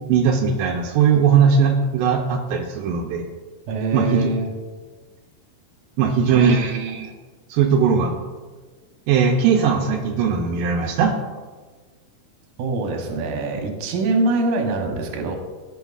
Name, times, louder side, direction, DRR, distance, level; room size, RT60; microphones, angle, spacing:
voice 1, 0.1-3.2 3.9-4.3 6.0-7.1 7.5-8.1 9.1-11.2, right 6 dB, 90° right, 2 dB, 1.9 m, -19 dB
voice 2, 3.7-4.5 12.6-15.4, right 2 dB, 70° right, 3 dB, 1.9 m, -23 dB
15.0 x 6.1 x 2.4 m, 1.3 s
omnidirectional pair, 4.7 m